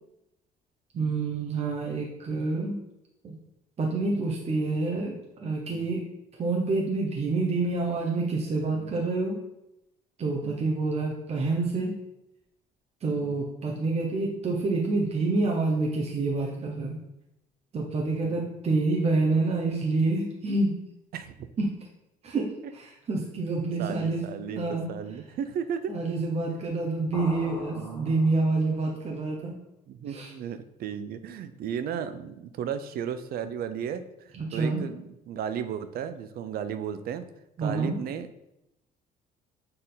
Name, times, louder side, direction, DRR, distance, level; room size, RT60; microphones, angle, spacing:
voice 1, 0.9-2.8 3.2-3.3 3.8-6.0 6.4-9.4 10.2-11.9 13.0-17.0 17.7-20.7 21.6-21.7 22.2-22.5 22.7-24.2 24.5-24.9 25.9-29.5 30.1-30.3 34.3-34.8 37.6-38.0, right 3 dB, 40° right, -1 dB, 1.0 m, -27 dB
voice 2, 23.8-25.9 27.7-28.1 29.9-34.0 34.5-37.3 37.6-38.3, right 8 dB, 60° right, 12 dB, 0.5 m, -35 dB
sound 1, 27.1-28.8, left 2 dB, 25° left, 1.6 m, -42 dB
6.6 x 3.7 x 4.0 m, 0.87 s
cardioid pair, 110°, 17 cm